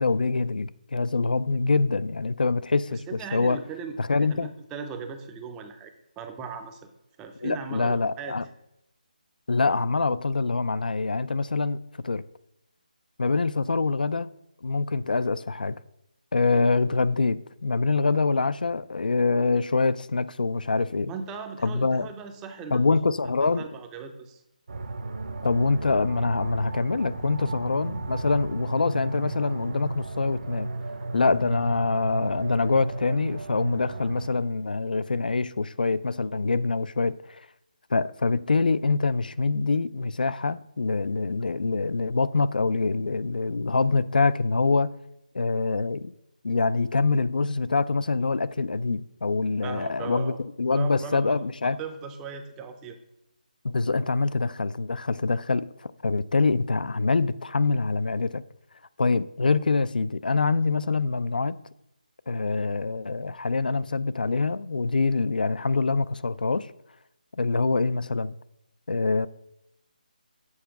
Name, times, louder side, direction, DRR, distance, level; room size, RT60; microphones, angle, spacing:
voice 1, 0.0-3.0 3.3-3.6 4.0-4.6 7.4-8.4 9.5-11.8 12.0-12.2 13.2-14.3 14.6-15.8 16.3-21.1 21.6-22.1 22.7-23.6 25.4-30.7 31.1-37.4 37.9-44.9 45.3-46.1 46.4-50.3 50.6-51.8 53.6-58.4 59.0-61.6 62.3-66.7 67.3-68.3 68.9-69.3, left 3 dB, 85° left, 0.3 m, -25 dB
voice 2, 2.9-4.0 4.3-6.9 7.2-8.3 21.0-23.0 23.4-24.4 49.6-50.4 50.7-51.4 51.6-53.0, right 5 dB, 10° right, 0.4 m, -38 dB
sound 1, 24.7-34.3, right 3 dB, 60° right, 0.7 m, -34 dB
7.1 x 4.6 x 5.8 m
figure-of-eight pair, 165°, 5 cm